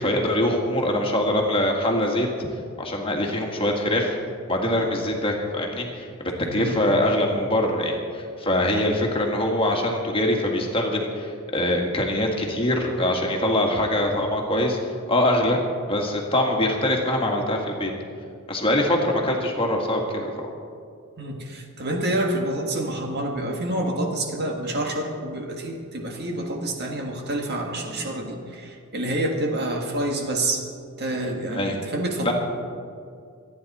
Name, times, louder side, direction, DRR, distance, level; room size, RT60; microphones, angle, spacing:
voice 1, 0.0-2.5 2.8-4.2 4.5-14.8 15.1-15.6 15.9-17.9 18.5-20.5 31.5-31.8 32.2-32.3, left 1 dB, 25° left, 1 dB, 1.9 m, -23 dB
voice 2, 6.4-6.8 21.2-30.6 31.0-32.3, right 1 dB, 50° right, 2 dB, 1.8 m, -28 dB
26.0 x 9.8 x 4.2 m, 2.3 s
head